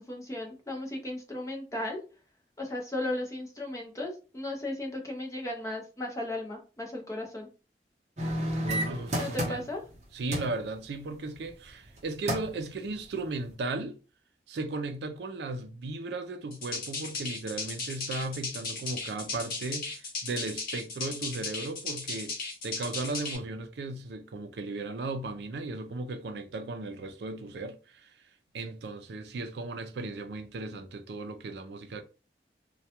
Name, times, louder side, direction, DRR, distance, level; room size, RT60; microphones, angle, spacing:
voice 1, 0.0-2.0 2.6-7.5 9.2-9.8, left 1 dB, 20° left, 0.5 m, -35 dB
sound 1, 8.2-9.9 10.3-10.6 11.8-12.0 12.3-12.6 13.1-13.2, equal, 40° right, 0.7 m, -31 dB
voice 2, 8.6-9.7 10.1-14.0 14.5-22.3 22.6-28.3 28.5-32.0, right 2 dB, 75° right, 0.4 m, -36 dB
sound 2, 16.5-23.4, left 3 dB, 50° left, 0.9 m, -36 dB
2.2 x 2.2 x 2.8 m
head